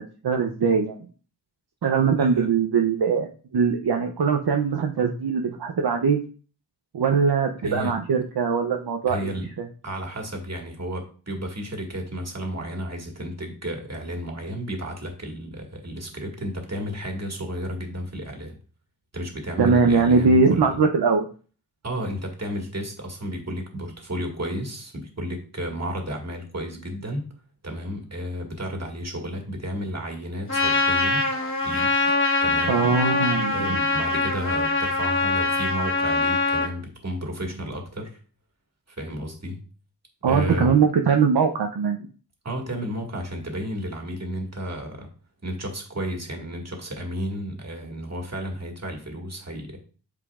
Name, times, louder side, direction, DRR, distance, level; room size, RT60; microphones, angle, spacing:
voice 1, 0.2-1.1 1.8-6.2 6.9-9.3 9.6-9.7 19.6-21.3 32.7-33.8 40.2-42.0, right 5 dB, 65° right, 3 dB, 0.7 m, -21 dB
voice 2, 2.2-2.5 7.6-7.9 9.1-9.5 9.8-18.6 19.1-20.8 21.8-27.3 27.6-31.3 31.6-32.8 33.5-38.2 38.9-39.6 40.3-40.8 42.4-45.1 45.4-49.8, equal, 40° right, 1 dB, 1.9 m, -32 dB
Trumpet, 30.5-36.7, left 3 dB, 30° left, 1.4 m, -23 dB
8.5 x 4.9 x 2.4 m, 0.40 s
wide cardioid pair, 60°, 42 cm